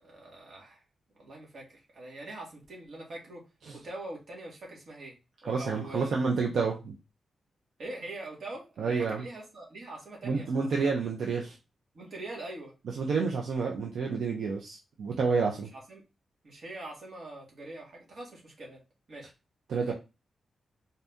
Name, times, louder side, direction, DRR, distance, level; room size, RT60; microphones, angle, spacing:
voice 1, 0.0-0.8 1.2-3.4 3.7-5.1 5.4-6.1 7.8-10.5 10.7-10.9 11.9-12.7 15.7-16.0 16.4-18.8 19.1-19.3 19.9-20.0, right 2 dB, 55° right, -2 dB, 2.0 m, -43 dB
voice 2, 5.5-6.9 8.8-9.2 10.2-11.5 13.0-15.7 19.7-19.9, right 4 dB, 80° right, 0 dB, 0.8 m, -29 dB
4.1 x 2.8 x 3.5 m, 0.27 s
wide cardioid pair, 115°, 0 cm